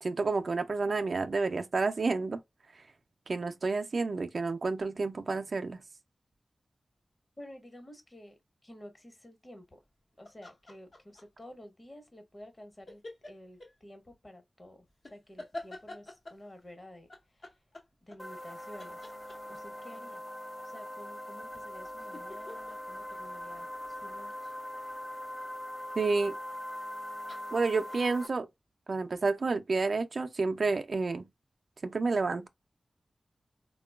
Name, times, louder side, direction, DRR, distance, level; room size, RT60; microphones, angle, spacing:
voice 1, 0.0-2.4 3.3-5.8 26.0-26.4 27.5-28.5 28.9-31.3 31.8-32.5, right 3 dB, 65° right, 0.4 m, -30 dB
voice 2, 7.4-9.8 10.2-14.8 15.1-17.6 18.0-19.1 19.5-20.2 20.6-24.5, left 1 dB, 35° left, 1.0 m, -51 dB
sound 1, 10.2-11.4 12.9-13.7 15.0-16.5 17.1-18.5 18.8-19.7 21.5-24.2 26.6-26.9 27.3-28.3, left 2 dB, 60° left, 0.9 m, -47 dB
sound 2, 18.2-28.3, left 1 dB, 5° left, 0.3 m, -41 dB
3.6 x 2.2 x 2.2 m
wide cardioid pair, 60°, 0 cm